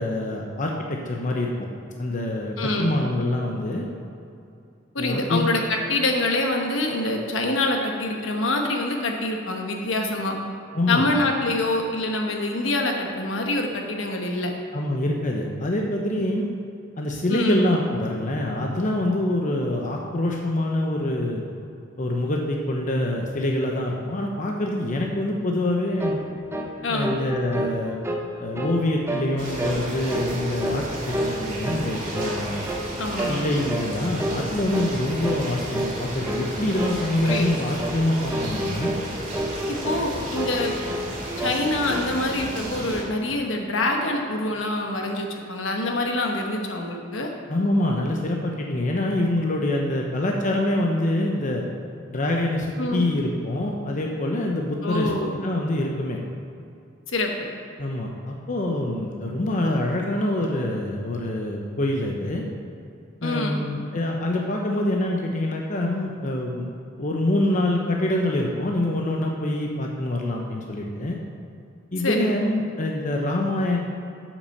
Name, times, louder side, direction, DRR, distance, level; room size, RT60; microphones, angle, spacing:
voice 1, 0.0-1.7 2.0-3.8 5.0-5.5 10.7-11.1 14.7-16.5 17.0-21.4 22.0-26.2 26.9-28.0 28.4-32.6 33.3-38.9 47.5-51.6 52.1-55.1 55.4-56.2 57.8-62.4 63.2-66.7 67.0-71.2 71.9-73.8, left 1 dB, 40° left, 0 dB, 0.8 m, -25 dB
voice 2, 2.6-2.9 4.9-10.4 10.9-14.5 17.3-17.6 26.8-27.1 33.0-33.4 37.2-37.5 39.7-40.7 41.4-47.3 52.8-53.1 54.8-55.3 57.1-57.5 63.2-63.6 72.0-72.3, left 2 dB, 70° left, 2 dB, 1.2 m, -25 dB
sound 1, 26.0-26.2 26.5-26.7 27.0-28.2 28.5-28.8 29.1-29.3 29.6-29.8 30.1-30.9 31.1-31.9 32.1-32.4 32.7-32.9 33.2-33.4 33.7-33.9 34.2-34.4 34.7-34.9 35.2-35.4 35.7-36.0 36.3-36.4 36.8-37.0 37.3-37.5 37.8-38.0 38.3-39.0 39.3-40.1 40.3-41.1 41.4-42.1, right 1 dB, 15° right, 0.8 m, -29 dB
sound 2, 29.4-43.0, right 1 dB, 40° right, 2.5 m, -33 dB
8.7 x 6.0 x 6.6 m, 2.6 s
head